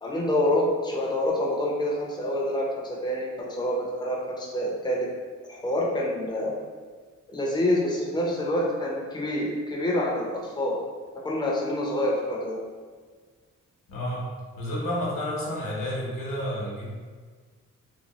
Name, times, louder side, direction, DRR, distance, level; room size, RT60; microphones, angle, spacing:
voice 1, 0.0-5.1 5.5-6.6 7.3-10.8 11.2-12.6, left 1 dB, 15° left, -3 dB, 0.6 m, -27 dB
voice 2, 13.9-14.2 14.6-16.9, equal, 90° left, -5 dB, 0.9 m, -30 dB
2.9 x 2.1 x 2.9 m, 1.5 s
cardioid pair, 70°, 32 cm